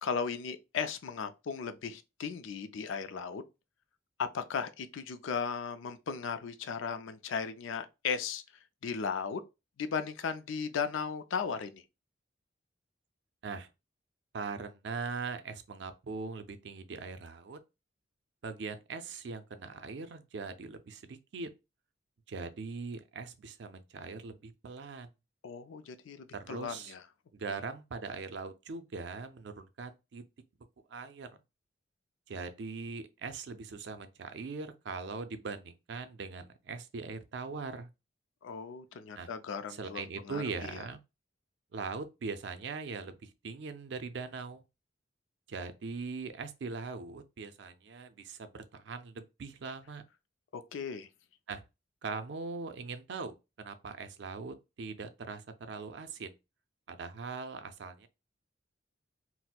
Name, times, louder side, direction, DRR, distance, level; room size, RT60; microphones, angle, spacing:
voice 1, 0.0-3.4 4.2-8.4 8.8-9.4 9.8-11.8 25.4-27.0 27.5-27.6 38.4-40.8 50.5-51.1, left 6 dB, 90° left, 0.4 m, -36 dB
voice 2, 14.3-17.6 18.4-21.5 22.3-25.1 26.3-26.9 27.3-30.2 30.9-31.3 32.3-37.9 39.2-39.3 39.7-41.0 41.7-44.6 45.5-50.0 51.5-51.6 52.0-56.3 56.9-58.1, right 4 dB, 65° right, 0.4 m, -41 dB
4.2 x 2.0 x 2.2 m
head